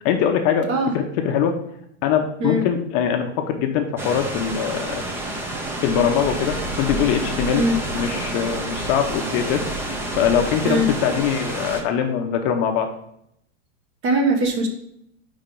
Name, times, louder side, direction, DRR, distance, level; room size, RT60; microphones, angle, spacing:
voice 1, 0.0-0.7 0.9-1.5 2.0-5.0 5.8-7.6 7.9-12.9, left 8 dB, 35° left, 5 dB, 0.6 m, -22 dB
sound 1, 4.0-11.8, right 1 dB, 5° right, 0.4 m, -29 dB
voice 2, 14.0-14.7, right 1 dB, 35° right, 4 dB, 1.2 m, -20 dB
4.9 x 4.3 x 5.2 m, 0.73 s
supercardioid pair, 150°, 36 cm